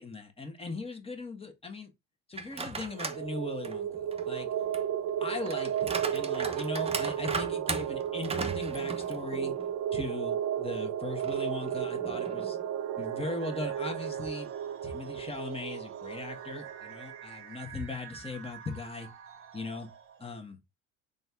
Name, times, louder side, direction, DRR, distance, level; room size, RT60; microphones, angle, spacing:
voice 1, 0.0-1.9 2.3-4.5 5.2-9.5 9.9-12.6 13.0-14.5 14.8-19.1 19.5-19.9 20.2-20.6, left 3 dB, 15° left, 1.2 m, -39 dB
sound 1, 2.3-3.2 3.6-9.7 10.1-10.2 11.2-12.7, right 4 dB, 15° right, 0.7 m, -38 dB
sound 2, 2.9-17.2, right 10 dB, 55° right, 0.8 m, -34 dB
sound 3, 12.8-20.4, right 8 dB, 40° right, 1.0 m, -49 dB
4.0 x 3.5 x 2.4 m
supercardioid pair, 80°, 35 cm